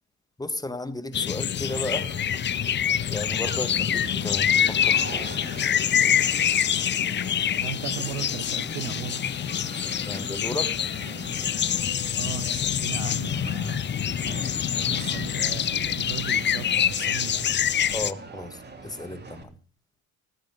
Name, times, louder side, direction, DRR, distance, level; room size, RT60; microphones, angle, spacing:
voice 1, 0.4-2.1 3.1-5.3 10.1-10.7 17.9-19.6, left 2 dB, 10° left, 1.4 m, -34 dB
sound 1, 1.1-18.1, left 9 dB, 25° left, 0.6 m, -26 dB
sound 2, 1.7-19.4, right 4 dB, 25° right, 3.1 m, -42 dB
voice 2, 7.6-9.2 12.2-13.8 14.8-17.5, right 17 dB, 75° right, 0.8 m, -37 dB
sound 3, 8.3-11.0, left 11 dB, 60° left, 5.5 m, -53 dB
19.0 x 7.6 x 5.3 m
hypercardioid pair, 75°, 42 cm